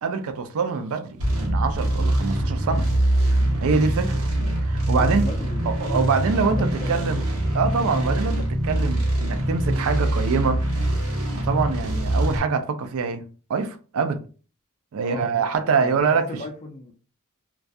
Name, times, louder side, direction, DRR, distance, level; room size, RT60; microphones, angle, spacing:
voice 1, 0.0-2.9 3.6-4.2 4.7-5.3 5.7-7.2 7.5-10.6 11.4-14.2 14.9-16.3, right 5 dB, 70° right, 0.4 m, -24 dB
sound 1, 1.2-12.4, right 1 dB, 90° right, 0.8 m, -23 dB
voice 2, 5.0-7.2 15.0-16.9, left 2 dB, 30° left, 0.4 m, -38 dB
2.3 x 2.2 x 2.6 m
head